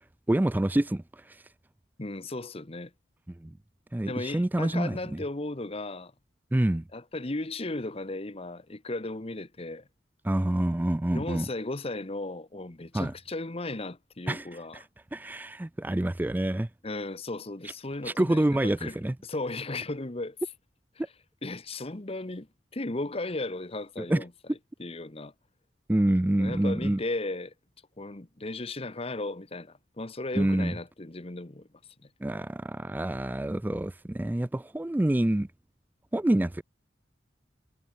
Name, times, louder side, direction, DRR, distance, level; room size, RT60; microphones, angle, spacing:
voice 1, 0.3-1.4 3.4-3.5 3.9-5.2 6.5-6.8 10.2-11.5 12.9-13.1 14.3-14.5 14.7-14.9 15.1-16.7 18.0-19.1 24.0-24.2 25.9-27.0 30.3-30.7 32.2-35.5 36.1-36.6, right 1 dB, 10° right, 0.3 m, -27 dB
voice 2, 2.0-2.9 4.0-6.1 6.9-9.9 11.1-14.8 16.8-19.0 19.2-20.4 21.4-22.5 22.7-24.3 24.8-25.3 26.4-27.5 28.0-31.7 32.0-32.1, left 2 dB, 30° left, 1.2 m, -35 dB
head